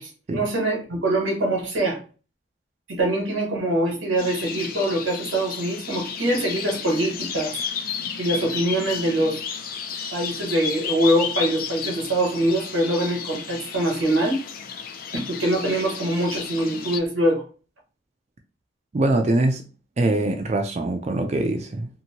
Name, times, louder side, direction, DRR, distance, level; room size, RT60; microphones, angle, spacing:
voice 1, 0.0-2.0 2.9-7.5 8.2-9.4 10.1-14.4 15.1-17.4, right 1 dB, 90° right, 1.1 m, -23 dB
sound 1, 4.2-17.0, left 6 dB, 45° left, 0.3 m, -33 dB
voice 2, 18.9-19.6 20.0-21.9, right 2 dB, 35° right, 0.3 m, -23 dB
2.7 x 2.6 x 2.8 m
head